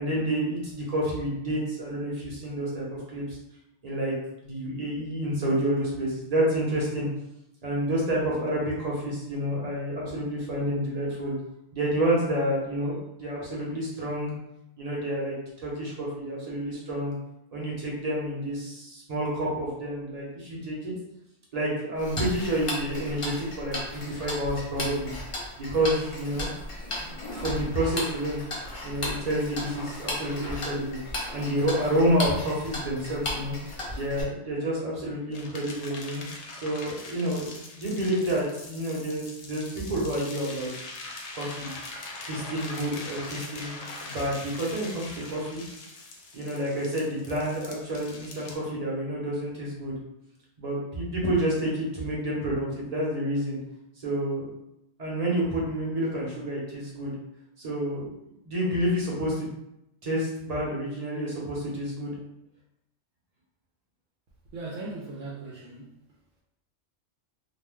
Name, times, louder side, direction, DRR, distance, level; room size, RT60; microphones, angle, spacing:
voice 1, 0.0-2.8 3.1-3.4 3.8-4.1 4.4-7.1 7.6-11.3 11.7-14.3 14.8-17.1 17.5-20.9 21.5-25.1 25.6-26.5 27.0-28.4 28.8-31.0 31.3-33.6 33.9-36.2 36.5-40.7 41.3-41.7 42.2-45.6 46.3-49.9 50.6-53.6 54.0-54.5 55.0-57.1 57.6-58.1 58.4-59.5 60.0-62.1, right 1 dB, 35° right, -5 dB, 0.8 m, -29 dB
Tick-tock, 22.0-34.2, left 1 dB, 35° left, 0.5 m, -35 dB
sound 1, 35.3-48.5, left 3 dB, 70° left, 0.8 m, -42 dB
voice 2, 64.5-66.0, right 3 dB, 75° right, -5 dB, 0.9 m, -38 dB
2.5 x 2.1 x 3.5 m, 0.84 s
omnidirectional pair, 1.3 m